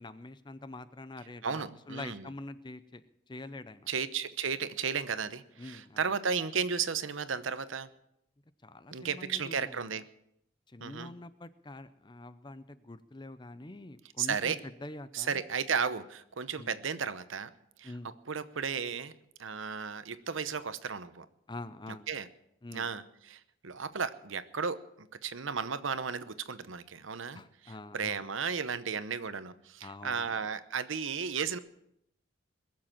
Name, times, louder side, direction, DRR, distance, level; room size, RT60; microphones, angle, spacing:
voice 1, 0.0-3.9 5.6-6.0 8.6-10.0 10.7-15.4 16.6-16.8 17.8-18.1 21.5-22.1 22.6-22.9 27.3-28.2 29.8-30.4, left 2 dB, 20° left, 14 dB, 0.6 m, -45 dB
voice 2, 1.4-2.3 3.9-7.9 8.9-10.0 10.8-11.1 14.2-14.6 15.1-17.5 17.8-17.9 18.3-19.1 19.4-21.3 22.1-22.3 22.7-31.6, right 6 dB, 75° right, 13 dB, 0.8 m, -34 dB
21.5 x 7.6 x 7.5 m, 0.78 s
head